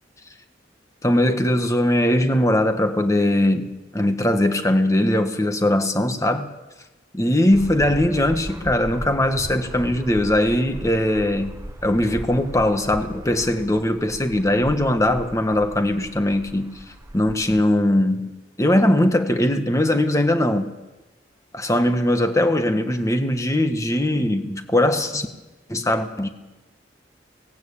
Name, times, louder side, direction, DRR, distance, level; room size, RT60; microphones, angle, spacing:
voice 1, 1.0-6.5 7.1-11.5 11.8-16.8 17.1-18.3 18.6-20.7 21.5-25.3 25.7-26.3, left 1 dB, 15° left, 7 dB, 1.5 m, -20 dB
sound 1, 7.5-17.6, right 1 dB, 15° right, 1.0 m, -37 dB
18.0 x 17.0 x 8.6 m, 1.0 s
head